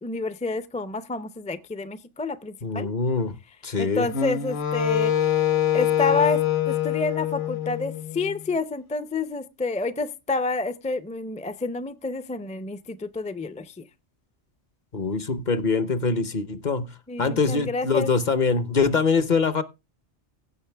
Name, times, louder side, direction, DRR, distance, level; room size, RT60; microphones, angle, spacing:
voice 1, 0.0-2.9 3.8-5.1 5.7-6.4 6.7-13.8 17.1-18.1, left 3 dB, 10° left, 0.4 m, -29 dB
voice 2, 2.6-3.3 3.6-4.1 14.9-16.9 17.2-19.6, left 4 dB, 45° left, 0.9 m, -23 dB
Wind instrument woodwind instrument, 4.1-8.3, left 10 dB, 60° left, 1.2 m, -24 dB
16.5 x 6.5 x 3.4 m
omnidirectional pair, 1.2 m